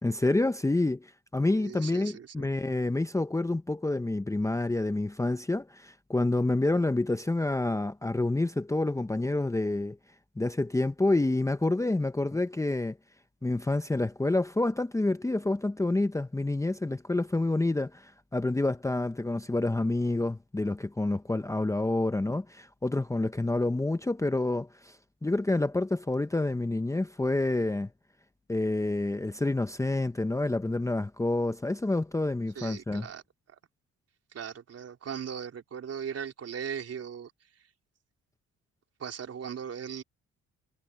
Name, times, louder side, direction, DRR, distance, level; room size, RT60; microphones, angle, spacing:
voice 1, 0.0-10.0 10.4-13.0 13.4-25.0 25.2-27.9 28.5-33.1, left 2 dB, 10° left, 0.8 m, -28 dB
voice 2, 1.6-2.5 32.6-33.2 34.3-37.3 39.0-40.0, right 7 dB, 55° right, 4.0 m, -38 dB
cardioid pair, 90°, 30 cm